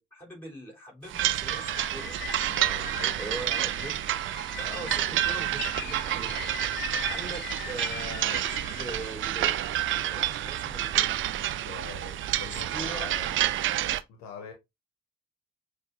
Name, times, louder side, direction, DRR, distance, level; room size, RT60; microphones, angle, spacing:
voice 1, 0.0-2.6 3.2-3.9 4.6-6.4 7.1-9.6 10.0-11.1 12.5-13.1, right 1 dB, 5° left, 3.5 m, -41 dB
sound 1, 1.1-14.0, right 12 dB, 40° right, 0.4 m, -29 dB
sound 2, 1.2-9.0, left 9 dB, 35° left, 0.4 m, -40 dB
voice 2, 2.5-3.2 7.0-7.1 11.6-13.4 14.1-14.5, left 6 dB, 55° left, 1.1 m, -44 dB
6.4 x 2.4 x 3.1 m
figure-of-eight pair, 40°, 33 cm